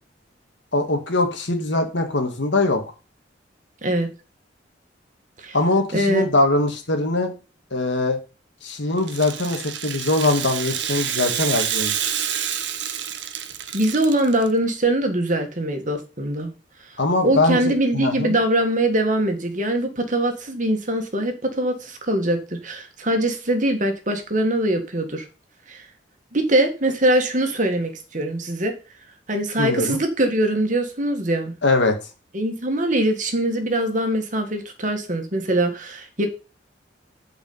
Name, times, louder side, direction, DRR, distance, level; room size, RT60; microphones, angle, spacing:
voice 1, 0.7-2.8 5.5-7.3 7.7-8.2 8.6-12.0 17.0-18.4 29.6-30.0 31.6-32.0, left 2 dB, 70° left, 5 dB, 1.9 m, -22 dB
voice 2, 5.9-6.2 13.7-16.5 17.2-25.2 25.7-25.8 26.3-28.7 29.3-31.5 32.3-36.3, right 1 dB, 40° right, 5 dB, 1.7 m, -22 dB
Rattle (instrument), 9.0-14.5, right 9 dB, 70° right, 1.0 m, -28 dB
8.3 x 5.1 x 5.5 m, 0.32 s
head